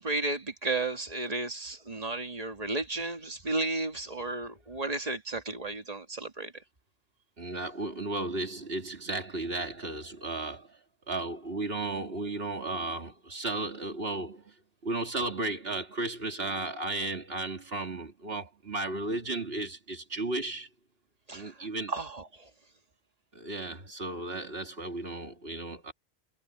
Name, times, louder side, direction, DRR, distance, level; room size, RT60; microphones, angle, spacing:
voice 1, 0.0-6.5 21.3-22.5, right 2 dB, 35° right, 2.0 m, -33 dB
voice 2, 7.4-10.7 11.1-14.5 14.8-20.7 21.3-21.9 23.3-25.9, right 2 dB, 60° right, 3.0 m, -34 dB
omnidirectional pair, 1.1 m